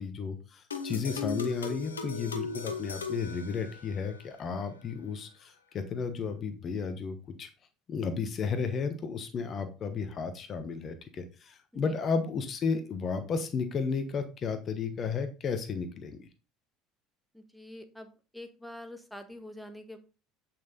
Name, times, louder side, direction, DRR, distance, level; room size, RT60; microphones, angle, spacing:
voice 1, 0.0-7.5 7.9-16.3, left 5 dB, 40° left, 9 dB, 1.2 m, -33 dB
sound 1, 0.7-4.2, left 4 dB, 80° left, 1.0 m, -37 dB
voice 2, 17.3-20.0, left 1 dB, ahead, 7 dB, 1.5 m, -46 dB
9.2 x 5.9 x 3.9 m, 0.32 s
figure-of-eight pair, 65°, 0 cm